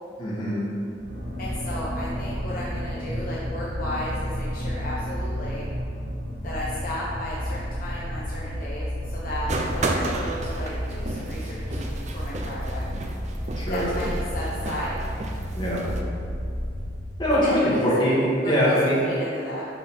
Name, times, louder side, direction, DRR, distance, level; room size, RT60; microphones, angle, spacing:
voice 1, 0.2-0.6 13.6-13.9 15.5-15.8 17.2-18.9, equal, 25° left, -7 dB, 2.1 m, -22 dB
sound 1, 1.0-17.2, equal, 65° right, 1.4 m, -31 dB
voice 2, 1.4-5.7 6.4-12.8 13.7-15.0 17.4-18.0 18.4-19.7, left 1 dB, 50° left, -6 dB, 1.1 m, -34 dB
sound 2, 9.5-16.0, right 2 dB, 40° right, 0.7 m, -33 dB
12.0 x 4.2 x 4.4 m, 2.4 s
head